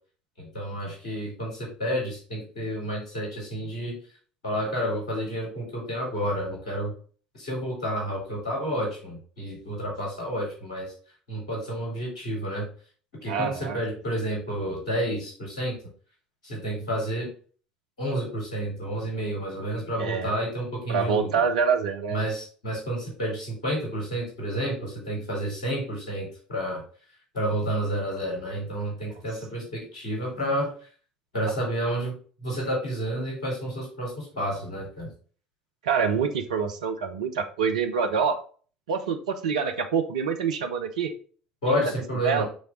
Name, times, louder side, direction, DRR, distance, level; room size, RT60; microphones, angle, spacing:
voice 1, 0.4-3.9 4.4-6.9 7.3-10.9 11.3-12.7 13.2-15.8 16.4-17.3 18.0-21.3 22.1-26.8 27.3-30.7 31.3-35.1 41.6-42.4, equal, 70° left, -3 dB, 3.2 m, -30 dB
voice 2, 13.3-13.8 20.0-20.3 20.9-22.2 35.8-38.4 38.9-41.1 42.2-42.4, right 6 dB, 70° right, 6 dB, 0.7 m, -26 dB
6.3 x 3.4 x 4.9 m, 0.41 s
figure-of-eight pair, 65°, 4 cm